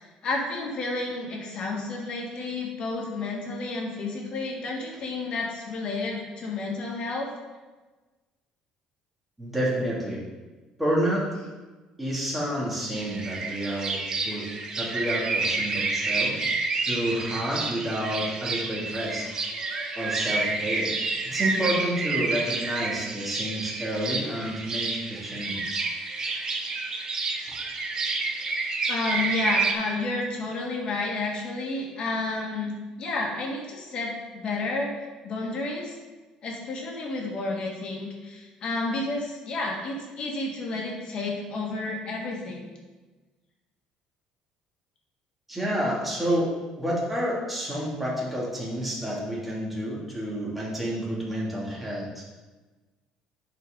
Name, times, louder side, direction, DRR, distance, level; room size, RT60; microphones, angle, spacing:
voice 1, 0.2-7.3 28.9-34.9 35.2-35.9 36.4-42.6, left 3 dB, 50° left, -1 dB, 2.0 m, -31 dB
voice 2, 9.4-10.2 10.8-11.3 12.0-14.5 14.8-16.3 16.8-19.3 19.9-20.9 21.3-25.9 45.5-52.2, equal, 5° right, -6 dB, 2.6 m, -29 dB
sound 1, 12.9-29.7, right 3 dB, 35° right, 1.0 m, -29 dB
10.5 x 4.7 x 3.8 m, 1.3 s
cardioid pair, 120°, 2 cm